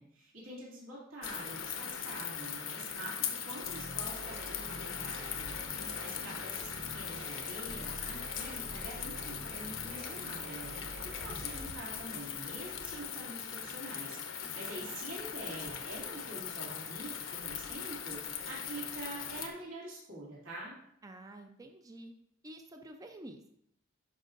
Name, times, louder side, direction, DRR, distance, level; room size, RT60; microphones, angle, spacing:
voice 1, 0.0-20.7, right 1 dB, 80° right, -6 dB, 2.6 m, -46 dB
sound 1, 1.2-19.5, left 8 dB, 85° left, 0.9 m, -40 dB
sound 2, 3.6-11.6, right 1 dB, 60° right, 1.3 m, -47 dB
voice 2, 5.8-6.2 21.0-22.1 22.4-23.5, right 1 dB, 20° right, 5 dB, 0.4 m, -50 dB
11.5 x 5.4 x 2.6 m, 0.70 s
head